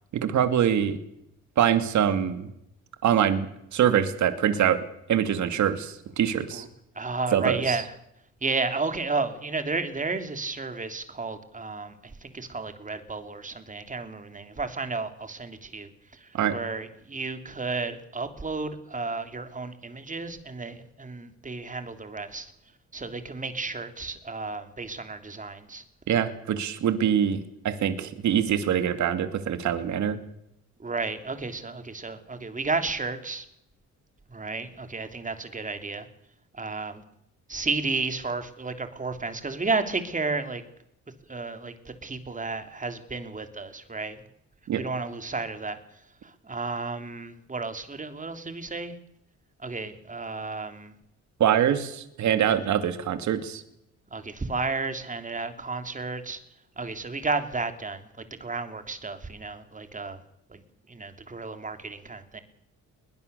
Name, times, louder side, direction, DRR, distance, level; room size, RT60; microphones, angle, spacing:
voice 1, 0.1-1.0 1.6-2.5 3.0-3.5 3.7-4.8 5.1-6.6 7.3-7.8 16.3-16.5 26.1-27.4 27.6-30.2 44.7-44.8 51.4-53.6, right 9 dB, 70° right, 10 dB, 2.5 m, -24 dB
voice 2, 6.9-7.9 8.4-11.9 12.2-15.9 16.5-22.5 22.9-25.8 30.8-33.4 34.3-36.1 36.5-37.0 37.5-40.6 41.3-41.7 42.0-44.2 44.7-45.8 46.5-48.9 49.6-50.9 54.1-56.4 56.8-58.0 58.4-60.2 60.5-60.6 60.9-62.4, right 3 dB, 25° right, 8 dB, 2.9 m, -32 dB
21.5 x 19.5 x 6.9 m, 0.78 s
cardioid pair, 90°, 30 cm